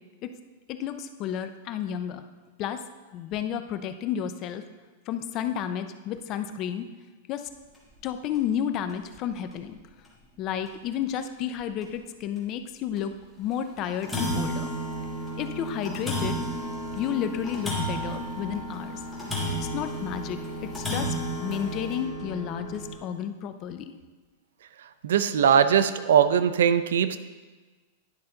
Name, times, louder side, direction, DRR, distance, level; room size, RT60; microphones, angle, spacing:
voice 1, 0.7-2.2 2.6-2.8 3.1-4.6 5.1-6.9 7.3-7.5 8.0-9.8 10.4-14.7 15.4-16.4 16.9-19.0 19.6-20.4 20.7-23.8, left 9 dB, 30° left, 9 dB, 0.4 m, -31 dB
sound 1, 7.7-7.9 8.3-8.4 8.9-9.0 10.0-10.1 10.7-10.8 11.2-11.3 11.8-11.9 13.0-13.1 13.5-13.6 13.8-23.0, right 1 dB, 5° left, 1.6 m, -32 dB
voice 2, 25.0-27.2, right 8 dB, 80° right, 12 dB, 0.5 m, -20 dB
11.0 x 5.6 x 3.8 m, 1.3 s
supercardioid pair, 165°, 0 cm